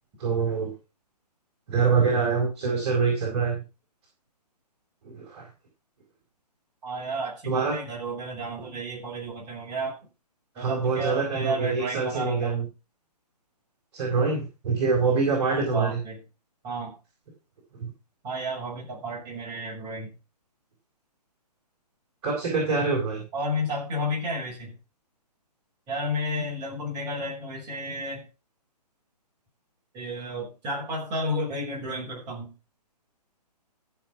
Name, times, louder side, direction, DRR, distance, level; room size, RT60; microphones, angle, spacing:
voice 1, 0.2-0.7 1.7-3.6 5.0-5.5 7.5-7.8 10.6-12.7 13.9-16.0 17.8-17.9 22.2-23.2, right 5 dB, 40° right, -1 dB, 4.6 m, -25 dB
voice 2, 6.8-10.0 10.6-12.5 15.5-16.2 16.6-16.9 18.2-20.1 23.3-24.7 25.9-28.2 29.9-32.5, equal, 20° right, -3 dB, 6.4 m, -32 dB
14.5 x 6.2 x 5.9 m, 0.30 s
figure-of-eight pair, 135°, 21 cm